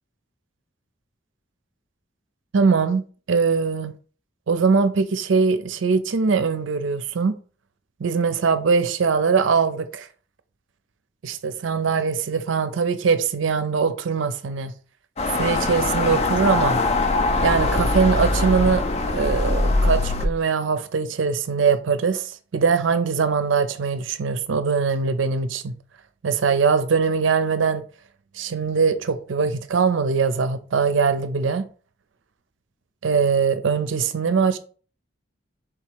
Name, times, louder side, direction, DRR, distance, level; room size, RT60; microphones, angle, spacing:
voice 1, 2.5-3.9 4.5-7.3 8.0-10.1 11.2-14.7 15.4-16.8 17.4-18.8 19.1-25.7 26.2-27.8 28.4-31.7 33.0-34.6, right 5 dB, 85° right, 0.5 m, -22 dB
sound 1, 15.2-20.3, left 2 dB, 35° left, 0.4 m, -22 dB
3.7 x 3.0 x 4.6 m
head